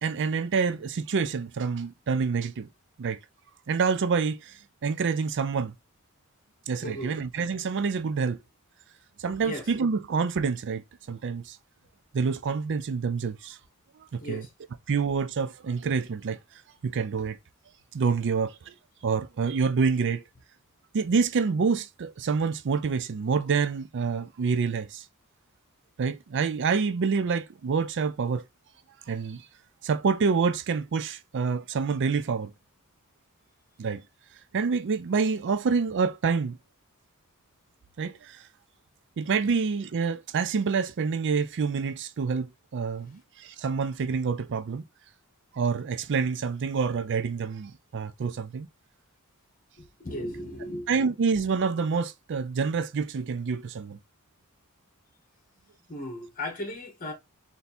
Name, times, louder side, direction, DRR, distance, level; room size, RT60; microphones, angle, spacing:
voice 1, 0.0-2.7 3.0-3.2 3.7-5.7 6.7-8.4 9.2-11.6 12.1-13.6 14.0-14.5 14.9-16.4 16.8-17.4 17.9-18.7 19.0-20.2 20.9-25.0 26.0-28.4 29.1-29.4 29.8-32.5 33.8-34.0 34.5-36.6 38.0-38.4 39.2-44.8 45.5-48.7 50.9-54.0, right 5 dB, 55° right, 0.4 m, -27 dB
voice 2, 6.8-7.2 9.4-9.6 14.2-14.5 50.0-50.9 55.9-57.1, left 1 dB, 40° left, 1.4 m, -36 dB
3.4 x 2.7 x 4.1 m
head